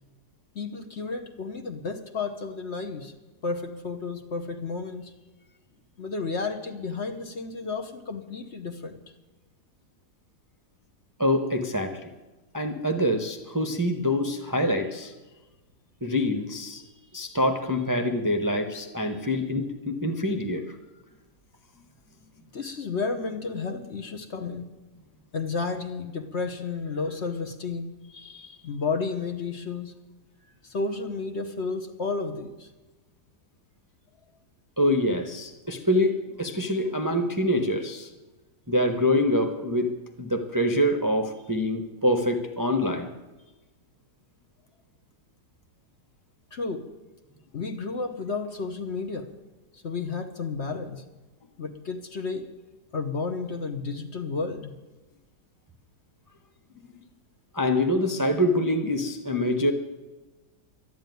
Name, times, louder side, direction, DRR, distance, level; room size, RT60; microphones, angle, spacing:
voice 1, 0.5-3.1 3.4-5.1 6.0-9.0 19.1-19.2 22.5-24.7 25.3-27.9 28.6-29.9 30.6-32.7 46.5-46.8 47.5-49.3 49.7-51.0 51.6-52.5 52.9-54.7, left 4 dB, 45° left, 6 dB, 1.2 m, -32 dB
voice 2, 11.2-12.0 12.5-15.1 16.0-16.8 17.1-20.7 28.2-28.6 34.8-38.1 38.7-39.9 40.2-43.1 57.5-59.7, left 1 dB, 15° right, 4 dB, 0.8 m, -25 dB
12.0 x 11.5 x 9.3 m, 1.2 s
omnidirectional pair, 1.7 m